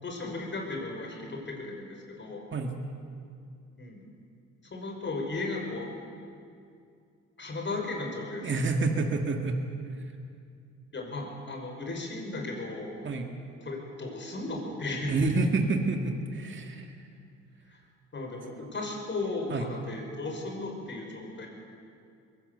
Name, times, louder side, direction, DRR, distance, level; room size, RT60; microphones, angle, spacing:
voice 1, 0.0-2.5 3.8-4.1 4.6-5.9 7.4-8.7 10.9-12.9 13.6-15.2 17.7-17.8 18.1-21.5, left 2 dB, 40° left, 1 dB, 5.4 m, -35 dB
voice 2, 8.4-9.6 13.0-13.3 15.1-16.9 19.5-19.6, right 3 dB, 40° right, 4 dB, 2.1 m, -28 dB
22.0 x 17.0 x 8.0 m, 2.4 s
cardioid pair, 90°, 30 cm